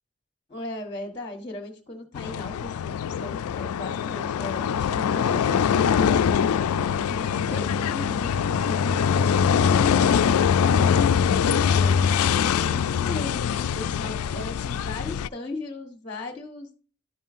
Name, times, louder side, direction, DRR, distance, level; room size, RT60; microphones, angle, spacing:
voice 1, 0.5-6.3 7.1-10.1 10.5-16.8, left 2 dB, 20° left, 3 dB, 1.2 m, -37 dB
sound 1, 2.1-15.3, left 7 dB, 85° left, 0.3 m, -23 dB
11.5 x 5.5 x 2.5 m, 0.40 s
head